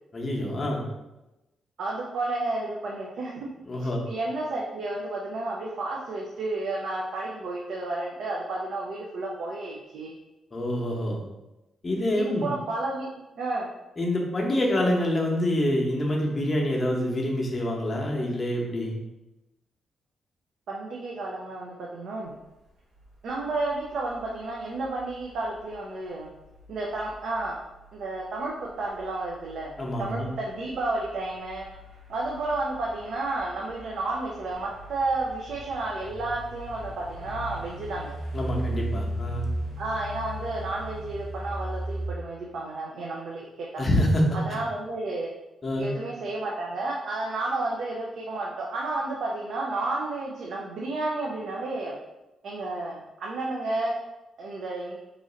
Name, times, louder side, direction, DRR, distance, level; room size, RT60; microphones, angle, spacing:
voice 1, 0.1-0.8 3.7-4.0 10.5-11.2 11.8-12.5 14.0-18.9 29.8-30.3 38.3-39.5 43.8-44.2 44.5-44.6 45.6-45.9, left 1 dB, 25° left, -2 dB, 0.8 m, -26 dB
voice 2, 1.8-3.5 3.8-10.1 12.1-13.1 13.4-13.7 20.7-22.3 23.2-26.3 26.7-27.6 27.9-29.7 30.0-31.7 32.1-38.2 39.8-43.8 44.3-45.3 45.8-52.0 52.4-54.0 54.4-54.9, right 2 dB, 70° right, -2 dB, 0.5 m, -31 dB
sound 1, 23.0-42.1, right 1 dB, 50° right, 0.9 m, -38 dB
3.0 x 2.5 x 3.8 m, 0.99 s
cardioid pair, 135°, 0 cm